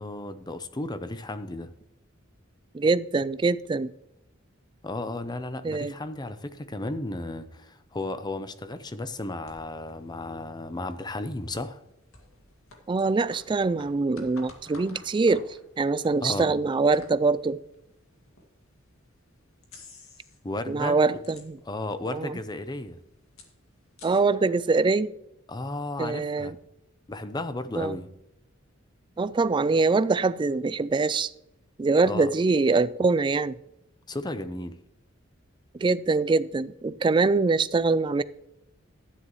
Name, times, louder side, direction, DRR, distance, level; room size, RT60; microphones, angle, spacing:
voice 1, 0.0-1.7 4.8-11.8 16.2-16.5 20.4-21.2 21.6-23.0 25.5-26.5 27.1-28.1 32.0-32.3 34.1-34.8, left 2 dB, 20° left, 0.6 m, -34 dB
voice 2, 2.7-3.9 5.6-5.9 12.9-15.5 15.8-17.6 20.7-21.6 22.1-22.3 24.0-25.1 26.0-26.5 27.8-28.0 29.2-31.3 31.8-33.5 35.8-38.2, right 3 dB, 25° right, 0.3 m, -24 dB
sound 1, 9.5-18.5 19.0-19.1 19.6-20.5 20.8-21.9 22.2-22.3 22.5-24.2, left 3 dB, 90° left, 2.2 m, -51 dB
12.5 x 9.8 x 3.1 m
head